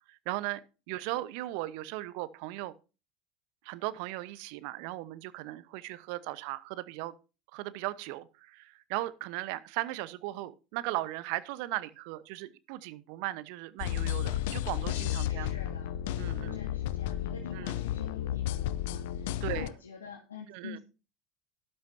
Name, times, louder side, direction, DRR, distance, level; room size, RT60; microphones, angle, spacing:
voice 1, 0.1-0.6 0.9-2.7 3.6-7.1 7.5-15.5 16.2-16.6 17.5-17.8 19.4-19.7 20.5-20.8, right 17 dB, 60° right, 1.0 m, -37 dB
sound 1, 13.8-19.7, left 12 dB, 65° left, 0.6 m, -33 dB
voice 2, 15.3-16.0 16.5-20.8, left 6 dB, 80° left, 1.6 m, -46 dB
13.0 x 11.5 x 2.8 m
hypercardioid pair, 75°, 0 cm